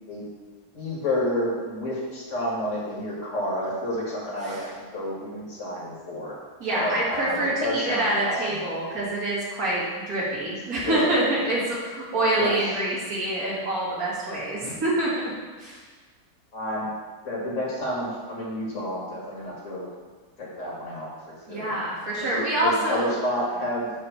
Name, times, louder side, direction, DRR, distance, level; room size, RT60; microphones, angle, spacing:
voice 1, 0.7-6.3 6.7-8.6 10.8-11.1 12.4-12.8 16.5-16.9 17.2-19.9 20.4-21.1 21.5-21.7 22.2-23.9, left 1 dB, 60° left, -4 dB, 1.9 m, -30 dB
voice 2, 6.6-15.1 15.6-15.8 21.5-23.1, right 1 dB, 85° right, -7 dB, 2.3 m, -26 dB
7.2 x 3.2 x 5.6 m, 1.4 s
omnidirectional pair, 1.5 m